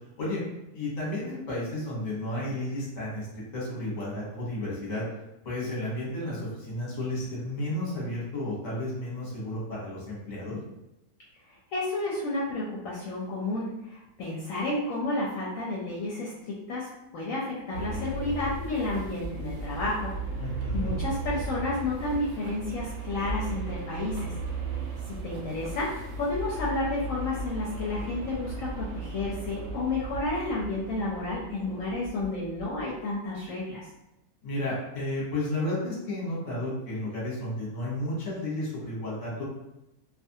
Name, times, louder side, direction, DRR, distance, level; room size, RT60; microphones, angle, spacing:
voice 1, 0.7-3.3 3.5-5.0 5.4-10.6 20.4-21.0 34.4-39.4, left 1 dB, 35° left, -5 dB, 0.9 m, -32 dB
voice 2, 11.5-20.1 20.7-24.3 25.1-33.9, left 2 dB, 70° left, -5 dB, 0.9 m, -31 dB
sound 1, 17.7-32.9, right 2 dB, 70° right, 0.8 m, -36 dB
2.5 x 2.3 x 2.7 m, 0.90 s
omnidirectional pair, 1.6 m